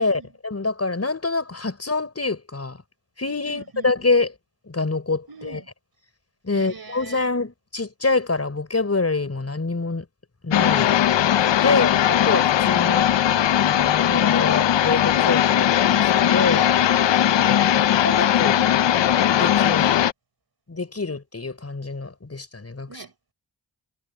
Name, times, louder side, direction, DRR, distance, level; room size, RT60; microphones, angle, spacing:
voice 1, 0.0-2.8 3.2-4.3 4.7-5.6 6.4-10.1 10.4-10.9 11.6-13.1 13.6-16.7 18.0-18.6 19.3-20.0 20.7-23.0, left 3 dB, 35° left, 5.9 m, -26 dB
voice 2, 3.5-3.8 5.3-5.6 6.5-7.3 11.6-12.2 17.3-18.0 22.9-23.3, right 4 dB, 60° right, 4.9 m, -42 dB
sound 1, 10.5-20.1, left 10 dB, 90° left, 0.9 m, -19 dB
cardioid pair, 55°, 42 cm